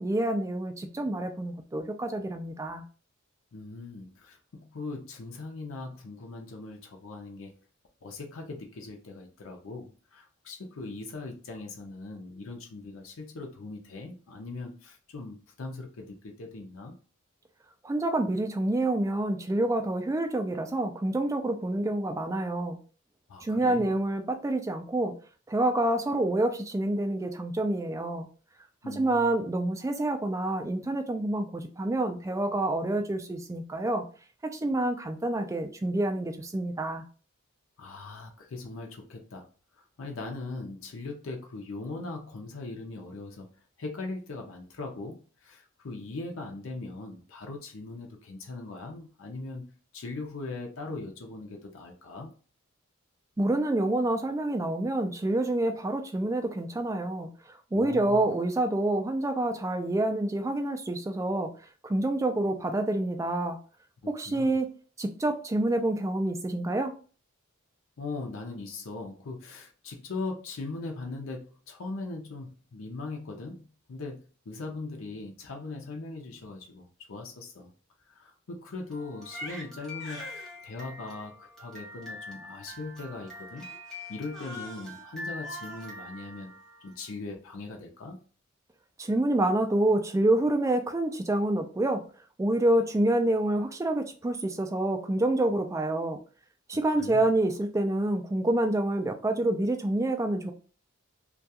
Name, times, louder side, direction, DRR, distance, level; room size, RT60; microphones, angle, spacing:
voice 1, 0.0-2.8 17.8-22.8 23.4-25.1 25.5-28.3 29.0-34.0 34.5-37.0 53.4-57.3 57.7-61.5 61.8-63.6 64.1-64.7 65.0-66.9 89.0-92.0 92.4-96.2 96.7-100.5, right 1 dB, 15° right, 0.3 m, -27 dB
voice 2, 3.5-7.5 8.0-16.9 23.3-24.0 28.8-29.4 37.8-39.4 40.0-43.5 43.8-52.3 57.7-58.2 64.3-64.6 68.0-77.7 78.1-83.7 84.1-86.5 86.8-88.2 96.9-97.3, left 3 dB, 70° left, 0.5 m, -40 dB
Crying sobbing, 78.9-87.1, left 1 dB, ahead, 0.8 m, -43 dB
2.3 x 2.3 x 2.7 m
head